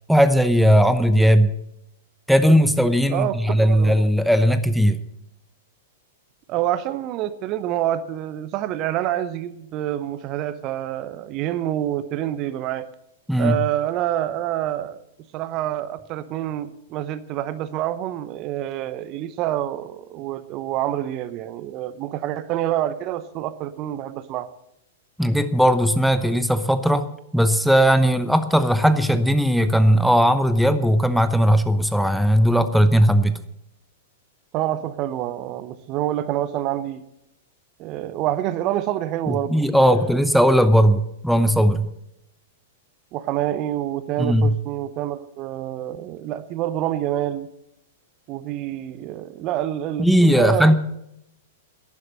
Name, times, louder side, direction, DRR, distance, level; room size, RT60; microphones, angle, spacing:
voice 1, 0.1-1.5 2.3-5.0 13.3-13.6 25.2-27.1 27.3-33.4 39.3-41.9 44.2-44.5 50.0-50.7, equal, ahead, 11 dB, 0.8 m, -18 dB
voice 2, 3.1-4.0 6.5-12.9 13.4-15.0 15.3-24.5 34.5-37.0 37.8-40.2 43.1-47.5 48.3-50.7, right 12 dB, 40° right, 14 dB, 0.8 m, -27 dB
11.0 x 11.0 x 7.6 m, 0.81 s
figure-of-eight pair, 100°, 0 cm